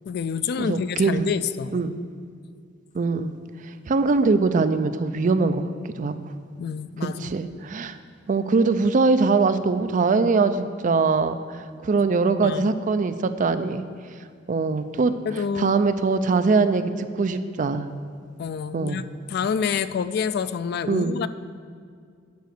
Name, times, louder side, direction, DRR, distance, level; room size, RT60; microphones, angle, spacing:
voice 1, 0.1-1.8 6.6-7.3 12.4-12.8 15.3-15.8 18.4-21.3, left 6 dB, 55° left, 15 dB, 0.3 m, -28 dB
voice 2, 0.6-1.3 1.7-1.9 2.9-3.4 3.9-5.7 6.0-6.1 7.2-8.0 8.3-13.8 14.5-15.1 15.6-17.9 18.7-19.0 20.9-21.2, right 4 dB, 40° right, 11 dB, 0.4 m, -22 dB
9.2 x 5.1 x 6.6 m, 2.2 s
head